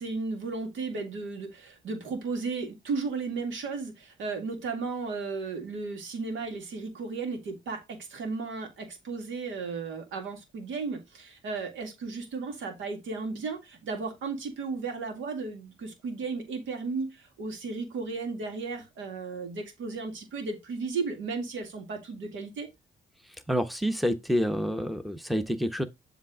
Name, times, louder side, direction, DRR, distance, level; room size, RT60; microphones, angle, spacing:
voice 1, 0.0-22.7, right 4 dB, 75° right, 2.1 m, -34 dB
voice 2, 23.5-25.8, equal, ahead, 0.9 m, -28 dB
7.5 x 3.3 x 4.9 m
cardioid pair, 90°, 20 cm